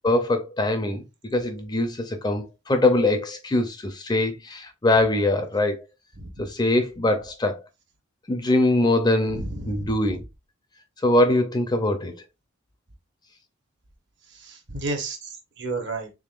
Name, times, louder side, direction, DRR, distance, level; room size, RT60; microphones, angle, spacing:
voice 1, 0.0-5.8 6.4-7.6 8.3-10.2 11.0-12.1, left 2 dB, 20° left, 0.5 m, -23 dB
voice 2, 9.3-9.9 14.3-16.1, right 2 dB, 55° right, 0.9 m, -32 dB
3.6 x 3.5 x 2.4 m
head